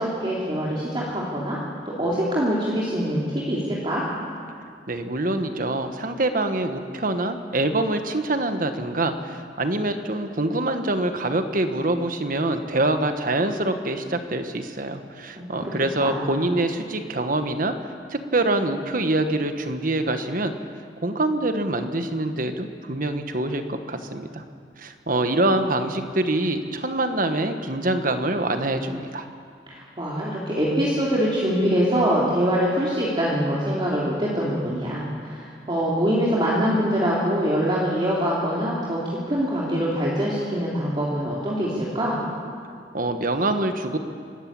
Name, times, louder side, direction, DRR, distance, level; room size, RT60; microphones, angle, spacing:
voice 1, 0.0-1.6 1.8-4.0 15.3-15.7 16.0-16.3 29.7-39.0 39.3-42.2, equal, 30° right, -6 dB, 2.9 m, -24 dB
voice 2, 4.9-17.7 18.1-20.5 21.0-24.4 24.8-29.3 42.9-44.0, right 2 dB, 50° right, 7 dB, 1.4 m, -25 dB
24.5 x 13.5 x 8.8 m, 2.2 s
head